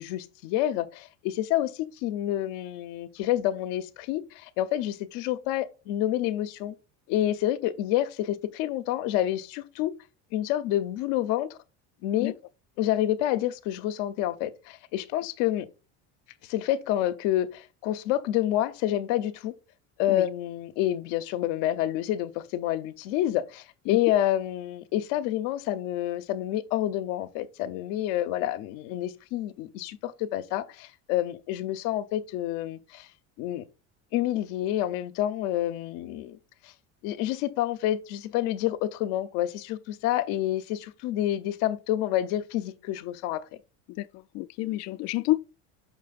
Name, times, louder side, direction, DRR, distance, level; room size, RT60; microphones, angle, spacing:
voice 1, 0.0-6.7 7.1-9.9 10.3-11.6 12.0-12.3 12.8-15.7 16.5-19.5 20.0-33.1 33.4-33.6 34.1-36.4 36.6-36.7 37.0-43.4, left 13 dB, 70° left, 0.8 m, -28 dB
voice 2, 44.3-45.4, left 18 dB, 50° left, 0.4 m, -28 dB
6.7 x 6.0 x 2.4 m
cardioid pair, 160°, 34 cm